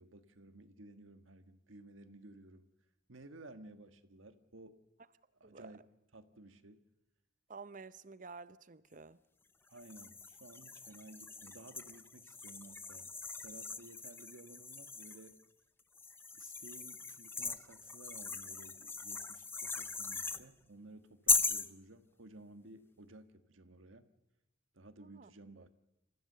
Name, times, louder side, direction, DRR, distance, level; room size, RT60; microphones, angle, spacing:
voice 1, 0.0-2.7 3.1-4.8 5.4-5.8 6.1-6.8 9.7-13.1 13.4-15.4 16.3-24.1 24.7-25.7, right 2 dB, 80° right, 1.6 m, -55 dB
voice 2, 5.4-5.7 7.5-9.2 25.0-25.3 25.6-25.7, right 4 dB, 40° right, 0.7 m, -51 dB
sound 1, 9.8-15.3 16.0-20.4 21.3-21.7, left 4 dB, 10° left, 0.6 m, -39 dB
28.0 x 15.0 x 6.8 m
head